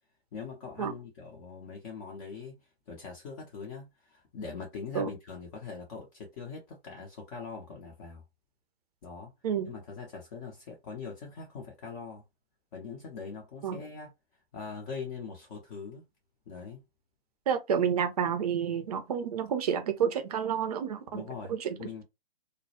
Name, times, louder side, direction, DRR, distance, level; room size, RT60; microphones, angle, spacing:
voice 1, 0.3-2.6 2.9-8.2 9.0-9.3 9.7-12.2 12.7-14.1 14.5-16.0 16.5-16.8 21.1-22.0, left 5 dB, 30° left, 0.6 m, -42 dB
voice 2, 17.5-21.2 21.5-22.0, right 7 dB, 40° right, 0.5 m, -30 dB
2.2 x 2.0 x 2.7 m
figure-of-eight pair, 125°, 30 cm